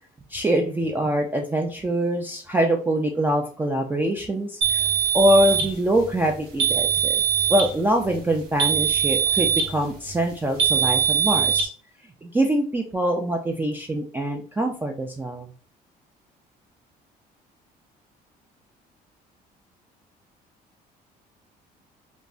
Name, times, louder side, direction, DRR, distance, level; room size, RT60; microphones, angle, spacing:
voice 1, 0.3-4.9 5.1-7.2 7.5-11.7 12.2-15.5, right 1 dB, 10° right, 2 dB, 0.3 m, -24 dB
sound 1, 4.6-5.7 6.6-7.7 8.6-9.7 10.6-11.7, right 8 dB, 70° right, 0.7 m, -21 dB
3.3 x 2.0 x 2.4 m, 0.41 s
cardioid pair, 110°, 17 cm